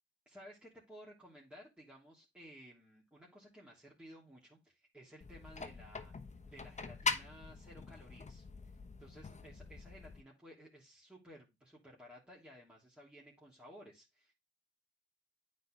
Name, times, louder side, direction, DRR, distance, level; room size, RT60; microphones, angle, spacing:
voice 1, 0.3-6.1 6.4-8.4 9.0-14.3, equal, 5° right, -5 dB, 3.0 m, -56 dB
sound 1, 5.2-10.2, left 4 dB, 35° left, 1.0 m, -42 dB
9.1 x 4.2 x 3.2 m, 0.23 s
cardioid pair, 55°, 21 cm